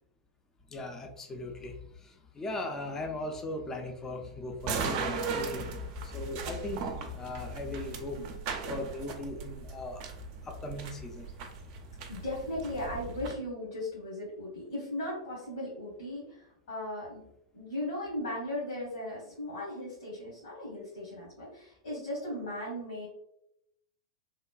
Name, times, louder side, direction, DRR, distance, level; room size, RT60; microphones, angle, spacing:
voice 1, 0.7-8.2 8.7-10.0 10.4-11.3, left 2 dB, 15° left, 3 dB, 0.4 m, -38 dB
sound 1, 4.6-13.3, right 5 dB, 45° right, 0.4 m, -38 dB
voice 2, 12.1-17.2 17.5-23.1, left 1 dB, 70° left, -6 dB, 1.2 m, -37 dB
2.9 x 2.2 x 2.3 m, 0.78 s
figure-of-eight pair, 95°, 3 cm